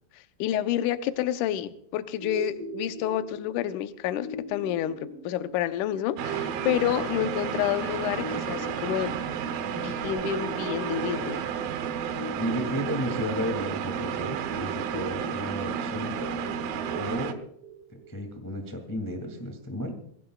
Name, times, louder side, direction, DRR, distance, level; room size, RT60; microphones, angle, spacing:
voice 1, 0.1-9.1 9.7-11.4, left 12 dB, 75° left, 9 dB, 2.0 m, -29 dB
sound 1, 2.1-18.1, right 3 dB, 25° right, 4.8 m, -41 dB
sound 2, 6.2-17.3, right 7 dB, 75° right, 2.7 m, -32 dB
Wind instrument woodwind instrument, 7.6-11.6, left 2 dB, 55° left, 3.7 m, -55 dB
voice 2, 12.4-16.3 17.0-17.3 17.9-19.9, equal, 10° left, 4 dB, 1.0 m, -33 dB
22.5 x 16.5 x 2.4 m, 0.68 s
omnidirectional pair, 4.4 m